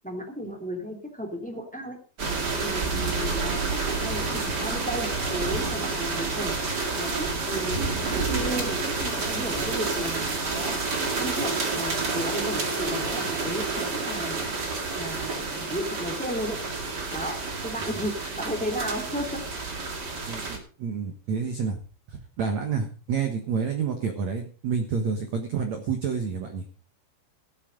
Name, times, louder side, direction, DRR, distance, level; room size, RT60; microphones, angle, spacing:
voice 1, 0.0-2.0 2.6-14.6 14.9-16.6 17.1-19.4, equal, 5° left, 4 dB, 1.1 m, -34 dB
sound 1, 2.2-20.6, right 3 dB, 40° right, 1.5 m, -29 dB
voice 2, 20.3-21.8 22.1-26.6, right 6 dB, 70° right, 6 dB, 1.7 m, -29 dB
15.5 x 8.4 x 5.2 m, 0.38 s
omnidirectional pair, 5.4 m